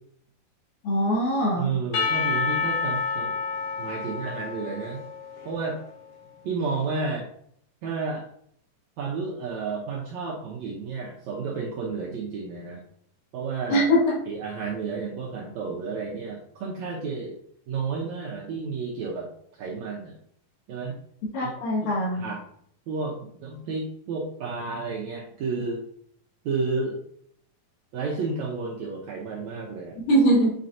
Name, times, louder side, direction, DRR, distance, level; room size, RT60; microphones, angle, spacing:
voice 1, 0.8-1.7 13.7-14.2 21.3-22.2 30.1-30.5, equal, 70° left, -6 dB, 3.3 m, -22 dB
voice 2, 1.6-3.3 3.8-5.0 5.4-5.8 6.4-7.3 7.8-8.3 9.0-12.8 13.3-13.9 14.3-17.4 17.7-19.3 19.6-20.2 20.7-20.9 21.4-21.5 21.8-22.4 22.9-25.8 26.4-27.0 27.9-30.0, right 4 dB, 80° right, -3 dB, 1.6 m, -31 dB
Percussion / Church bell, 1.9-5.9, left 5 dB, 85° left, 1.3 m, -29 dB
8.9 x 4.2 x 2.7 m, 0.66 s
omnidirectional pair, 4.2 m